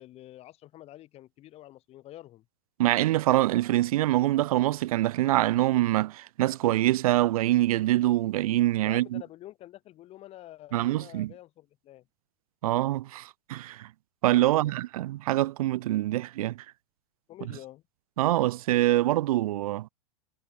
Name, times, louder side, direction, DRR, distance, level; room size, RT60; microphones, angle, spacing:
voice 1, 0.0-2.5 8.8-12.1 14.5-14.7 17.3-17.8, left 14 dB, 35° left, 1.7 m, -47 dB
voice 2, 2.8-9.2 10.7-11.3 12.6-13.9 14.2-16.6 18.2-19.9, right 15 dB, 75° right, 0.4 m, -25 dB
hypercardioid pair, 120°, 19 cm